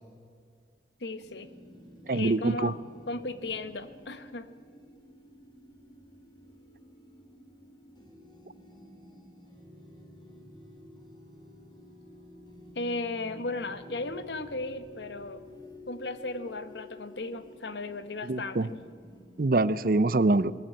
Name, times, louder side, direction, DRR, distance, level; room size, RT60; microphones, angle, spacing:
voice 1, 1.0-1.5 2.1-2.8 3.1-4.5 12.7-15.4 15.9-18.7, left 2 dB, 80° left, 11 dB, 1.1 m, -36 dB
sound 1, 1.2-19.6, left 1 dB, 25° left, 3.5 m, -51 dB
voice 2, 2.1-2.7 18.2-18.7 19.4-20.5, right 2 dB, 50° right, 17 dB, 0.6 m, -24 dB
21.0 x 14.0 x 8.9 m, 2.1 s
head